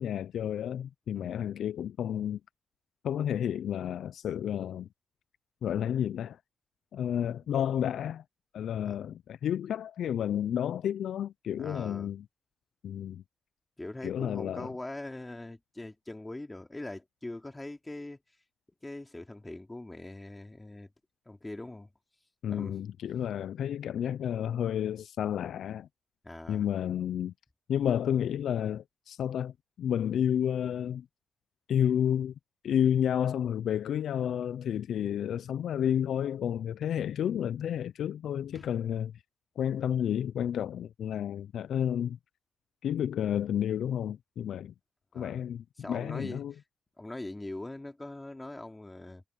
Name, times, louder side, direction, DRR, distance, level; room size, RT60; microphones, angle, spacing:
voice 1, 0.0-2.4 3.0-4.9 5.6-6.4 6.9-8.2 8.5-12.2 12.8-13.2 14.0-14.7 22.4-25.9 26.5-27.3 27.7-31.1 31.7-32.3 32.6-39.1 39.6-42.2 42.8-44.7 45.1-46.5, left 9 dB, 80° left, 0.5 m, -31 dB
voice 2, 11.6-12.1 13.8-18.2 18.8-20.9 21.3-21.9 22.5-22.8 26.2-26.6 38.5-38.7 45.1-45.4 45.8-46.6 47.0-49.2, left 2 dB, 20° left, 3.4 m, -42 dB
supercardioid pair, 45°, 0 cm